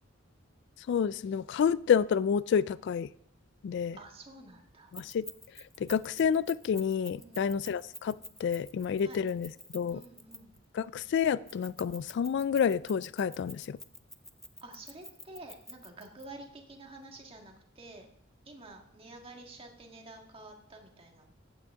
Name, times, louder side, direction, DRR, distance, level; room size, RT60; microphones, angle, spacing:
voice 1, 0.9-3.1 3.6-4.0 4.9-5.2 5.8-10.0 10.7-13.8, left 7 dB, 60° left, 19 dB, 0.3 m, -29 dB
voice 2, 3.9-4.9 7.1-7.5 9.0-9.2 9.9-10.5 14.6-18.1 18.4-21.3, right 2 dB, 30° right, 2 dB, 1.8 m, -49 dB
Keys jangling, 4.9-10.6 11.5-16.2, left 1 dB, ahead, 0.5 m, -47 dB
14.5 x 8.9 x 3.6 m, 0.71 s
head